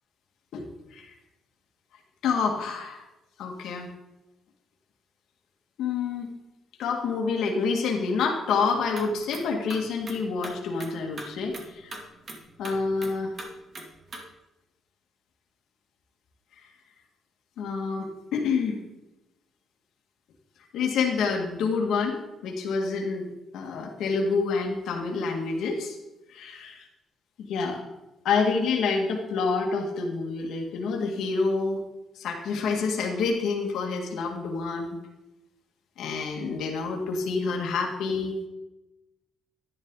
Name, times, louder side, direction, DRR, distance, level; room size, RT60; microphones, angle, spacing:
voice 1, 0.5-1.1 2.2-3.0 3.4-3.9 5.8-6.3 6.8-11.9 12.6-13.3 17.6-18.8 20.7-22.2 22.4-26.0 26.3-26.8 27.4-27.8 28.2-31.8 32.2-35.0 36.0-38.4, left 4 dB, 80° left, 1 dB, 1.9 m, -28 dB
sound 1, 8.7-14.2, right 2 dB, 45° right, 2.5 m, -42 dB
11.5 x 10.5 x 3.9 m, 0.97 s
cardioid pair, 90°, 0 cm